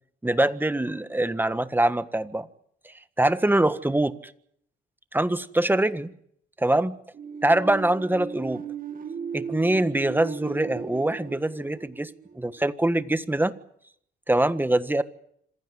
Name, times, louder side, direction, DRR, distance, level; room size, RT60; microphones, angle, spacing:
voice 1, 0.2-2.5 2.8-4.3 5.1-6.1 6.6-6.9 7.4-8.6 9.3-12.1 12.3-13.5 14.3-15.0, right 1 dB, 10° right, 12 dB, 1.5 m, -24 dB
sound 1, 7.1-12.8, right 6 dB, 45° right, 2.7 m, -37 dB
26.5 x 16.0 x 9.6 m, 0.71 s
cardioid pair, 90°, 20 cm